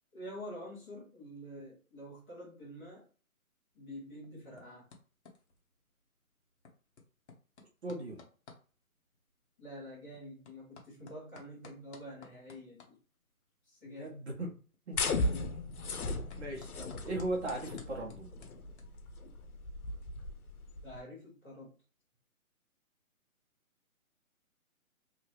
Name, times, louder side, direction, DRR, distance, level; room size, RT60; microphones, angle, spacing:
voice 1, 0.1-3.1 3.7-4.9 9.6-13.0 13.6-14.2 15.2-15.6 20.8-21.7, equal, 5° left, -10 dB, 0.6 m, -47 dB
sound 1, 3.7-18.8, left 4 dB, 50° left, 0.9 m, -59 dB
voice 2, 7.8-8.2 13.9-14.6 14.9-15.0 16.4-18.3, right 2 dB, 50° right, -1 dB, 1.0 m, -38 dB
sound 2, 14.9-21.0, left 2 dB, 85° left, 0.8 m, -37 dB
2.9 x 2.7 x 3.0 m, 0.38 s
hypercardioid pair, 155°, 43 cm